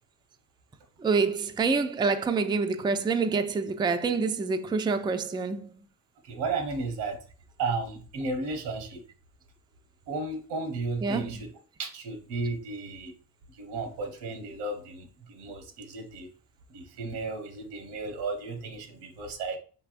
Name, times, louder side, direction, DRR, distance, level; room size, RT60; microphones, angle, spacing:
voice 1, 1.0-5.8 11.0-11.4, right 4 dB, 10° right, 0.3 m, -27 dB
voice 2, 6.2-7.2 7.6-9.0 10.1-11.5 11.8-13.1 13.6-16.3 16.7-19.6, right 3 dB, 90° right, 1.1 m, -34 dB
5.4 x 3.4 x 2.5 m
cardioid pair, 80°, 41 cm